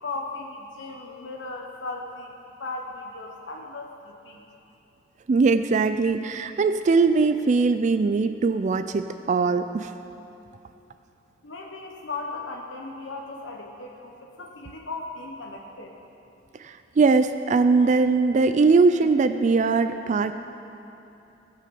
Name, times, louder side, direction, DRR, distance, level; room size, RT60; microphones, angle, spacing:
voice 1, 0.0-2.3 2.6-4.4 11.4-15.9, left 3 dB, 75° left, 0 dB, 0.9 m, -37 dB
voice 2, 5.3-9.9 16.6-20.3, right 4 dB, 40° right, 10 dB, 0.3 m, -21 dB
17.0 x 6.5 x 6.9 m, 2.9 s
head